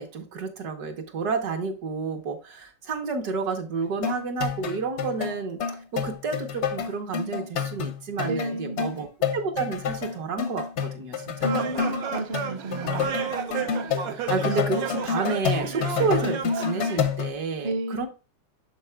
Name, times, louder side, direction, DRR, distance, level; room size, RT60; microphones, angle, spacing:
voice 1, 0.0-5.6 5.9-9.1 9.3-11.7 13.5-13.7 14.1-18.1, right 4 dB, 65° right, 1.4 m, -30 dB
sound 1, 4.0-17.3, left 7 dB, 65° left, 0.7 m, -29 dB
voice 2, 8.2-8.8 11.4-13.2 17.6-18.1, right 1 dB, 50° right, 0.8 m, -32 dB
sound 2, 11.4-17.1, right 7 dB, 85° right, 1.6 m, -32 dB
12.0 x 4.2 x 2.2 m
omnidirectional pair, 2.0 m